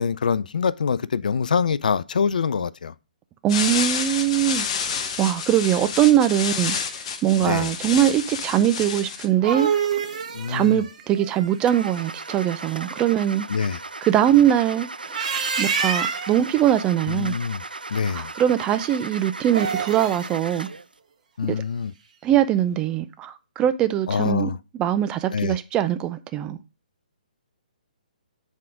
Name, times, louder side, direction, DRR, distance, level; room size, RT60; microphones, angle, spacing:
voice 1, 0.0-2.9 7.4-7.7 10.3-10.8 13.5-13.8 17.1-17.6 17.9-18.3 21.4-21.9 24.1-24.6 25.3-25.6, left 6 dB, 65° left, 0.4 m, -24 dB
voice 2, 3.4-6.8 7.2-9.7 10.5-13.5 14.0-15.2 15.6-17.4 18.1-20.7 21.5-21.6 22.2-26.6, right 11 dB, 20° right, 0.4 m, -22 dB
sound 1, 3.5-9.3, left 6 dB, 40° left, 1.0 m, -29 dB
sound 2, 9.1-12.2 14.9-16.4 19.4-20.3, right 6 dB, 55° right, 1.5 m, -27 dB
Car / Engine starting, 11.7-20.9, right 3 dB, 90° right, 0.4 m, -37 dB
7.5 x 3.7 x 4.7 m
figure-of-eight pair, 135°, 5 cm